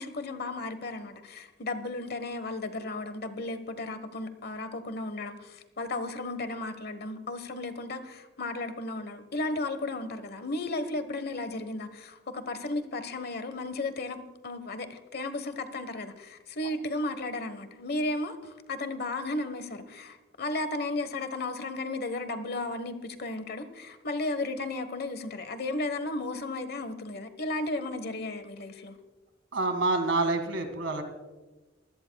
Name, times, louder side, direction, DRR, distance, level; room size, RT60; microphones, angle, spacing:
voice 1, 0.0-28.9, left 2 dB, 55° left, 10 dB, 1.2 m, -34 dB
voice 2, 29.5-31.0, right 2 dB, 85° right, 7 dB, 2.1 m, -27 dB
23.0 x 16.5 x 2.3 m, 1.2 s
head